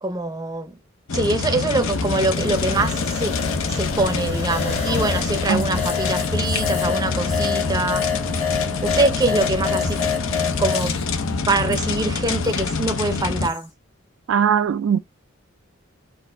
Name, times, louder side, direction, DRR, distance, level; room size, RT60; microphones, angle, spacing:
voice 1, 0.0-0.8 1.1-3.4 3.7-8.1 8.8-10.0 10.6-11.0 11.5-13.7, right 2 dB, 20° right, 0.5 m, -24 dB
sound 1, 1.1-13.5, left 4 dB, 80° left, 0.6 m, -25 dB
sound 2, 1.8-10.9, left 7 dB, 30° left, 1.2 m, -28 dB
Female speech woman speaking, 5.3-12.2 12.4-13.7, left 3 dB, 55° left, 1.8 m, -40 dB
voice 2, 14.3-15.0, right 7 dB, 75° right, 0.3 m, -19 dB
4.3 x 2.4 x 4.3 m
head